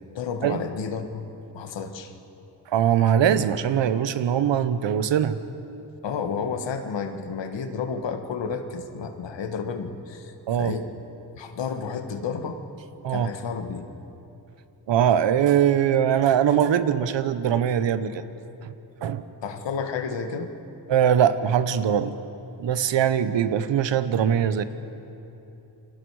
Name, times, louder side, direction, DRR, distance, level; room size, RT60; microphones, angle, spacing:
voice 1, 0.1-1.2 1.5-2.1 6.0-10.9 11.4-12.6 13.1-13.9 19.4-20.5, left 5 dB, 80° left, 7 dB, 1.6 m, -31 dB
voice 2, 2.7-5.4 10.5-10.7 13.0-13.3 14.9-18.2 19.0-19.2 20.9-22.2 22.6-24.6, right 9 dB, 80° right, 12 dB, 1.0 m, -21 dB
28.5 x 22.0 x 4.9 m, 2.9 s
cardioid pair, 90°, 43 cm